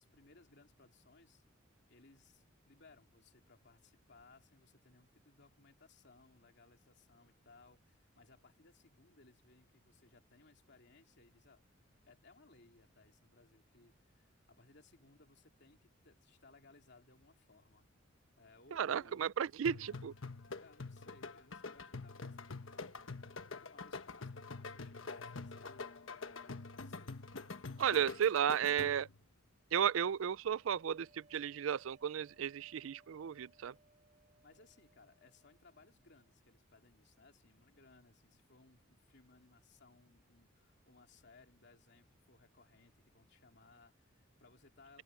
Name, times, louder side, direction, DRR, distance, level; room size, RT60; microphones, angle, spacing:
voice 1, 0.0-1.4 1.9-11.6 12.0-17.9 18.4-19.3 20.6-27.2 34.4-45.0, left 3 dB, 60° left, 3.0 m, -64 dB
voice 2, 18.7-20.1 27.8-29.1 29.7-33.7, right 8 dB, 80° right, 0.4 m, -34 dB
sound 1, 19.6-29.2, left 3 dB, 75° left, 1.3 m, -46 dB
sound 2, 30.5-36.4, right 2 dB, 40° right, 4.0 m, -69 dB
open air
head